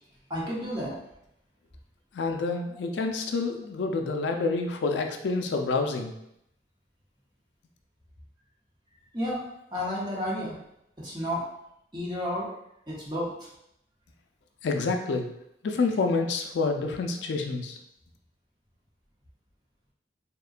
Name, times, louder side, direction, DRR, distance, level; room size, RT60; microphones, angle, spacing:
voice 1, 0.3-1.0 9.1-9.4 9.7-10.6 11.0-11.5 11.9-12.5 12.9-13.5, equal, 25° right, -6 dB, 0.8 m, -31 dB
voice 2, 2.1-6.1 14.6-15.3 15.6-17.8, left 3 dB, 80° left, 4 dB, 0.4 m, -28 dB
3.6 x 2.1 x 2.4 m, 0.79 s
head